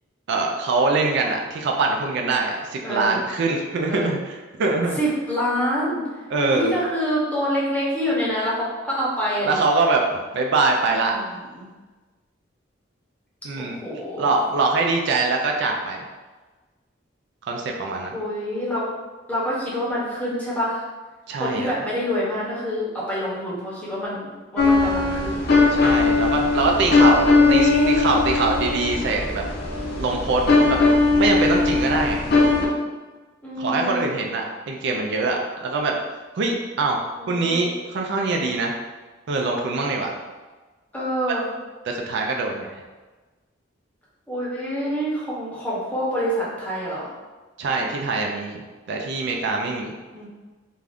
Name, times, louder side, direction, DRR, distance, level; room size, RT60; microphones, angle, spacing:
voice 1, 0.3-5.0 6.3-6.7 9.4-11.1 13.4-13.8 14.2-16.0 17.4-18.2 21.3-21.7 25.7-29.4 30.0-30.8 31.1-32.2 33.6-35.9 36.4-37.0 37.3-38.7 39.3-40.1 41.9-42.7 47.6-49.9, right 3 dB, 65° right, 1 dB, 0.4 m, -23 dB
voice 2, 2.8-3.2 3.9-4.2 5.0-9.6 10.8-11.7 13.6-14.3 18.1-18.9 19.3-20.8 21.4-25.5 27.4-28.0 33.4-34.0 37.2-37.7 40.9-41.5 44.3-47.1 50.1-50.3, equal, 10° left, -7 dB, 0.8 m, -26 dB
sound 1, 24.6-32.7, left 3 dB, 55° left, 0.5 m, -19 dB
2.5 x 2.3 x 3.4 m, 1.3 s
head